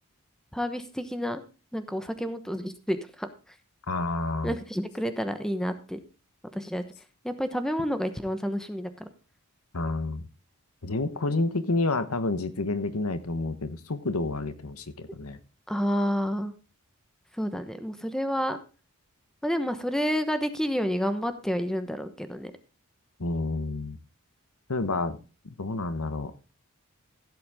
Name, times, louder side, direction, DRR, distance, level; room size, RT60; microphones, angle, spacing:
voice 1, 0.5-1.4 1.7-3.3 4.4-6.0 6.5-6.8 7.2-9.1 15.7-16.5 17.4-18.6 19.4-22.5, equal, 5° left, 9 dB, 1.0 m, -29 dB
voice 2, 3.9-4.5 9.7-10.3 10.8-15.4 23.2-24.0 24.7-25.2 25.4-26.4, left 2 dB, 80° left, 12 dB, 1.1 m, -29 dB
16.0 x 7.8 x 3.6 m, 0.33 s
head